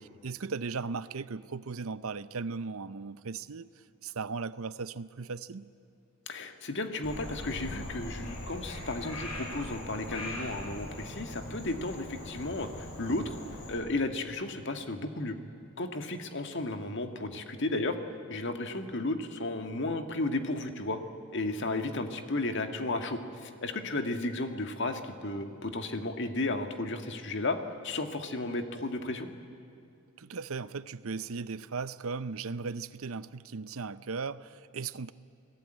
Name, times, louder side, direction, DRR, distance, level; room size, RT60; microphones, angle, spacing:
voice 1, 0.2-5.7 30.2-35.1, right 4 dB, 70° right, 15 dB, 0.7 m, -37 dB
voice 2, 6.3-13.4 13.7-15.4 15.8-18.0 18.3-21.0 21.3-27.6 27.8-29.3, left 2 dB, 55° left, 7 dB, 1.8 m, -33 dB
Frog, 7.0-13.7, left 1 dB, 80° left, 7.4 m, -41 dB
29.5 x 19.0 x 9.0 m, 2.7 s
head